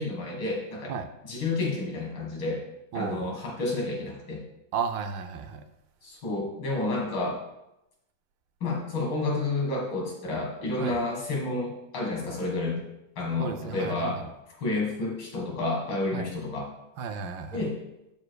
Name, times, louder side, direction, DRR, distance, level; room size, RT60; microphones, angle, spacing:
voice 1, 0.0-0.9 1.3-2.6 2.9-4.4 6.0-7.4 8.6-12.8 13.2-14.2 14.6-16.7 17.5-17.8, left 2 dB, 90° left, -1 dB, 2.5 m, -30 dB
voice 2, 2.9-3.3 4.7-5.7 10.8-11.0 13.4-14.3 16.1-16.3 17.0-17.6, right 6 dB, 75° right, 7 dB, 1.3 m, -33 dB
12.5 x 4.8 x 2.2 m, 0.88 s
omnidirectional pair, 2.2 m